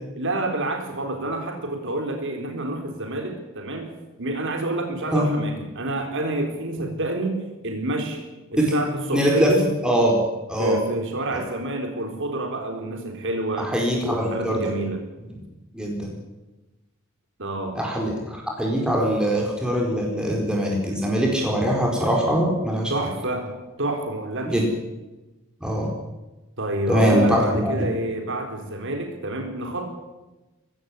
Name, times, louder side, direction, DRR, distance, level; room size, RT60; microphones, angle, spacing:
voice 1, 0.2-3.9 4.2-8.2 8.5-9.7 10.6-13.7 14.0-15.0 17.4-17.8 22.9-24.6 26.6-29.8, right 1 dB, 60° right, 3 dB, 4.3 m, -28 dB
voice 2, 9.1-9.5 9.8-10.2 10.5-10.8 13.6-14.6 15.7-16.1 17.7-22.9 24.4-24.6 25.6-25.9 26.9-27.9, equal, 5° right, -1 dB, 4.5 m, -22 dB
22.5 x 16.5 x 9.7 m, 1.1 s
head